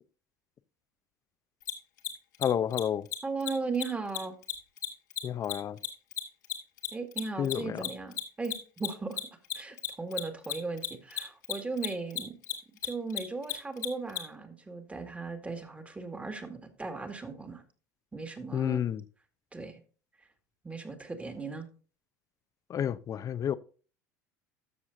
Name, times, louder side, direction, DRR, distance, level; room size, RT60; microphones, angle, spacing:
Mechanisms, 1.6-1.7 2.0-2.1 2.3-2.5 2.7-2.8 3.1-3.2 3.4-3.5 3.7-3.8 4.1-6.9 7.1-14.2, left 13 dB, 80° left, 1.9 m, -33 dB
voice 1, 2.4-3.1 5.2-5.8 7.4-7.9 18.5-19.0 22.7-23.6, left 9 dB, 35° left, 0.7 m, -30 dB
voice 2, 3.2-4.4 6.9-9.2 9.5-12.3 12.8-17.6 18.1-18.8 19.5-19.8 20.6-21.7, right 3 dB, 15° right, 1.9 m, -37 dB
13.0 x 7.2 x 2.6 m
hypercardioid pair, 80°, 9 cm